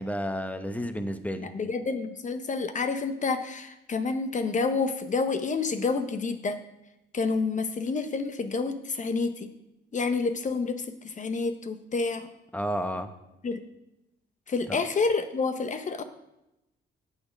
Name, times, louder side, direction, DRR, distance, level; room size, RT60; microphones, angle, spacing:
voice 1, 0.0-1.5 12.5-13.1 14.7-14.8, equal, 5° left, 8 dB, 1.0 m, -31 dB
voice 2, 1.4-6.6 7.1-9.5 9.9-12.3 13.4-13.6 14.5-16.0, left 4 dB, 40° left, 9 dB, 0.9 m, -29 dB
8.5 x 6.6 x 6.4 m, 0.91 s
cardioid pair, 90°, 20 cm